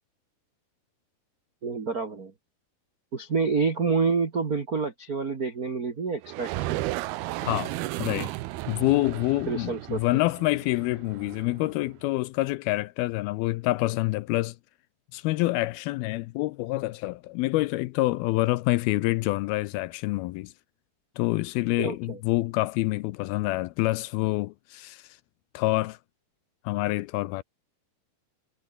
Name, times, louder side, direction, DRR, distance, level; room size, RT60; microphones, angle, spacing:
voice 1, 1.6-2.3 3.1-6.8 9.5-10.0 21.8-22.2, right 5 dB, 65° right, 0.9 m, -28 dB
sound 1, 6.2-11.9, right 17 dB, 80° right, 2.7 m, -34 dB
voice 2, 7.4-7.7 8.0-8.3 8.7-14.6 15.1-20.5 21.2-25.0 25.5-26.0 26.7-27.4, left 19 dB, 80° left, 2.3 m, -27 dB
omnidirectional pair, 4.7 m